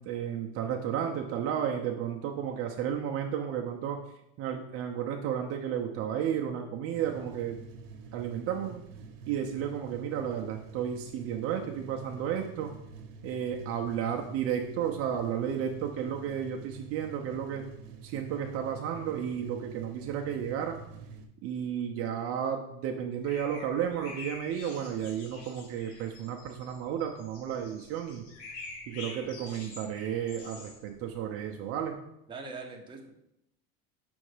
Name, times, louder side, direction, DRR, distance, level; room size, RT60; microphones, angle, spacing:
voice 1, 0.0-4.0 4.4-7.6 8.1-8.8 9.3-12.7 13.2-17.7 18.0-20.8 21.4-28.2 28.9-32.0, right 9 dB, 50° right, 2 dB, 0.7 m, -33 dB
sound 1, 6.9-21.3, right 5 dB, 85° right, 1.0 m, -47 dB
sound 2, 23.2-31.9, left 3 dB, 80° left, 1.6 m, -47 dB
voice 2, 32.3-33.1, right 4 dB, 15° right, 0 dB, 0.9 m, -42 dB
6.3 x 3.5 x 4.9 m, 0.79 s
cardioid pair, 140°, 29 cm